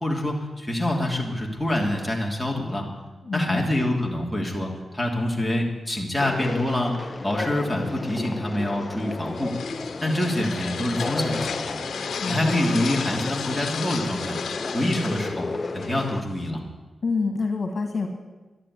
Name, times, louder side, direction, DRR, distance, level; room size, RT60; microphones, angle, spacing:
voice 1, 0.0-2.8 3.3-9.6 10.0-11.7 12.3-14.4 14.7-15.5 15.7-16.6, left 1 dB, 5° left, -2 dB, 3.0 m, -26 dB
voice 2, 3.2-3.7 12.1-12.5 17.0-18.1, left 4 dB, 50° left, 5 dB, 2.1 m, -27 dB
Conversation, 6.2-16.2, left 3 dB, 35° left, 0.7 m, -33 dB
sound 1, 9.0-16.5, left 6 dB, 90° left, 1.0 m, -35 dB
12.0 x 11.5 x 9.6 m, 1.2 s
wide cardioid pair, 100°, 0 cm